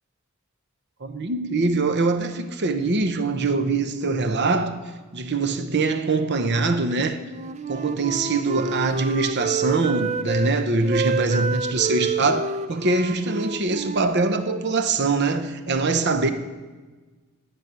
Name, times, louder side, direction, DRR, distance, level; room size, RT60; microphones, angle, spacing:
voice 1, 1.0-4.8 5.1-7.2 7.7-16.3, right 3 dB, 50° right, 0.8 m, -23 dB
Wind instrument woodwind instrument, 7.2-10.5 10.8-14.6, right 4 dB, 30° right, 0.4 m, -29 dB
11.0 x 7.1 x 8.2 m
head